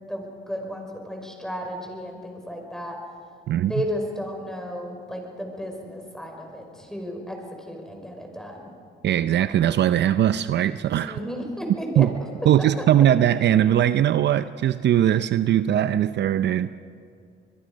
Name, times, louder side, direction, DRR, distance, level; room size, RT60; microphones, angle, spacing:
voice 1, 0.1-3.0 3.7-8.7 11.1-12.1 12.8-12.9, equal, ahead, 2 dB, 5.3 m, -33 dB
voice 2, 9.0-11.2 12.0-12.1 12.5-16.8, right 11 dB, 60° right, 13 dB, 0.6 m, -20 dB
25.5 x 22.0 x 5.2 m, 2.3 s
cardioid pair, 90°, 20 cm